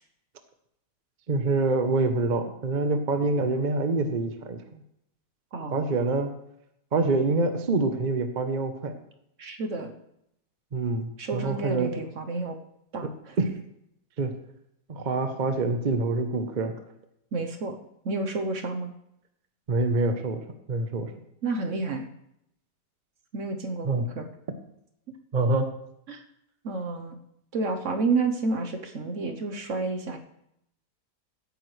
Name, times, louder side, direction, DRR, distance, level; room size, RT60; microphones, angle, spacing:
voice 1, 1.3-4.8 5.7-6.3 6.9-8.9 10.7-11.9 13.4-13.6 14.2-14.3 14.9-16.7 19.7-20.4 20.7-21.1 23.8-24.0 25.3-25.7, right 3 dB, 35° right, 7 dB, 0.8 m, -26 dB
voice 2, 5.5-5.8 9.4-9.9 11.2-12.6 12.9-13.4 17.3-17.8 18.0-18.9 21.4-22.1 23.3-24.3 26.1-26.2 26.6-27.2 27.5-30.2, right 3 dB, 55° right, 5 dB, 1.2 m, -30 dB
16.0 x 9.0 x 3.2 m, 0.77 s
omnidirectional pair, 1.7 m